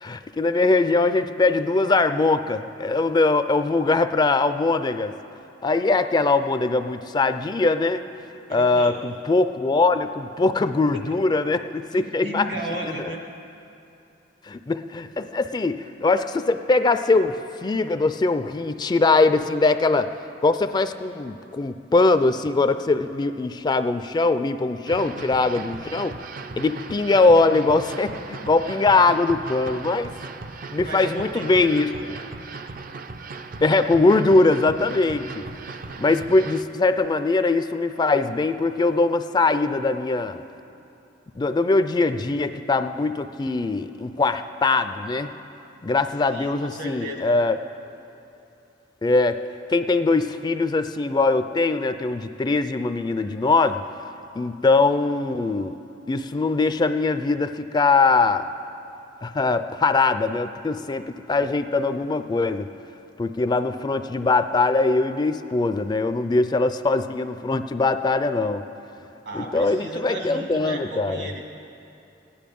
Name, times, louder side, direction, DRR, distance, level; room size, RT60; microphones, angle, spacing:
voice 1, 0.0-5.1 5.6-8.1 8.5-12.5 12.8-12.9 14.5-20.1 20.4-26.1 26.6-28.1 28.4-30.1 30.7-31.9 33.6-35.4 36.0-40.4 41.4-45.3 45.8-47.6 49.0-49.4 49.7-53.8 54.4-55.8 56.1-58.5 59.2-62.7 63.2-68.6 69.3-71.3, left 3 dB, 25° left, 10 dB, 0.3 m, -21 dB
voice 2, 8.5-9.0 10.9-11.2 11.9-13.2 30.8-32.1 46.3-47.4 69.3-71.4, right 1 dB, 70° right, 1 dB, 1.9 m, -34 dB
sound 1, 24.9-36.7, right 3 dB, 50° right, 0.5 m, -38 dB
16.0 x 10.5 x 5.3 m, 2.7 s
head